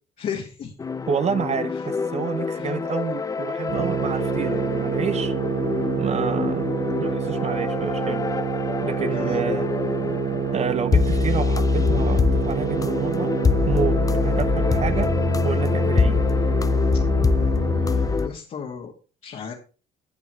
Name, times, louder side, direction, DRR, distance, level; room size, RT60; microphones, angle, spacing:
voice 1, 0.2-0.7 2.5-2.7 9.1-9.4 17.9-18.9 19.2-19.5, left 7 dB, 50° left, 2.1 m, -34 dB
sound 1, 0.8-18.3, left 5 dB, 20° left, 0.6 m, -24 dB
voice 2, 1.1-5.3 6.0-6.7 7.0-8.2 8.8-9.7 10.5-13.3 13.7-15.1 15.4-16.3, right 6 dB, 40° right, 0.7 m, -29 dB
sound 2, 3.7-18.2, right 7 dB, 60° right, 1.2 m, -27 dB
12.5 x 7.3 x 3.2 m
cardioid pair, 110°, 17 cm